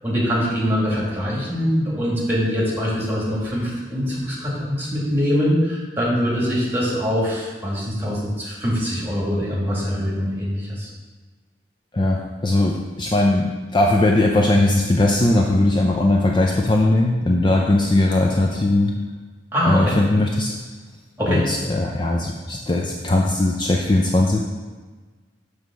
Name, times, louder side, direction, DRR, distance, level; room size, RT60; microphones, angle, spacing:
voice 1, 0.0-10.9 19.5-20.0 21.2-21.5, equal, 10° right, -5 dB, 2.0 m, -23 dB
voice 2, 11.9-18.9 19.6-20.5 21.3-24.4, left 2 dB, 25° left, 0 dB, 0.5 m, -19 dB
7.2 x 3.3 x 6.1 m, 1.3 s
head